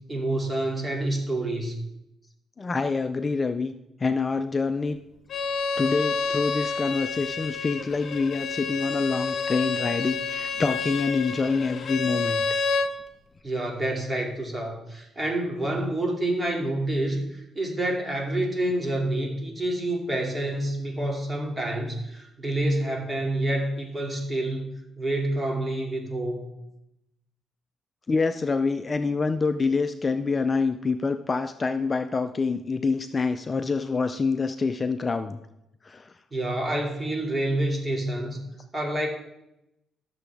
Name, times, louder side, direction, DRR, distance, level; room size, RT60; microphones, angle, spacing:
voice 1, 0.1-1.8 13.4-24.7 25.0-26.5 36.3-38.4 38.7-39.1, right 1 dB, 20° right, 0 dB, 2.5 m, -28 dB
voice 2, 2.6-3.7 4.0-5.0 5.8-12.4 28.1-35.4 35.8-36.2, left 4 dB, 30° left, 9 dB, 0.5 m, -26 dB
Bowed string instrument, 5.3-12.9, left 4 dB, 55° left, 1.1 m, -29 dB
13.0 x 6.9 x 3.5 m, 0.87 s
cardioid pair, 90°, 0 cm